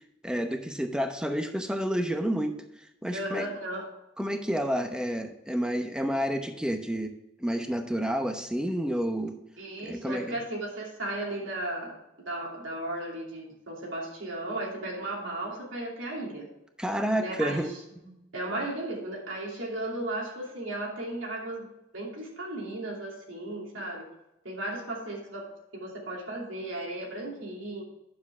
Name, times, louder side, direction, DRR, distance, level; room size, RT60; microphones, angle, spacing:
voice 1, 0.2-2.6 3.0-3.5 4.2-7.1 7.4-9.4 9.8-10.4 16.8-17.7, equal, 5° right, 6 dB, 0.8 m, -29 dB
voice 2, 3.1-3.9 9.6-16.5 17.2-21.7 21.9-24.0 24.4-27.8, right 1 dB, 75° right, -2 dB, 2.7 m, -35 dB
9.7 x 7.2 x 3.6 m, 0.89 s
head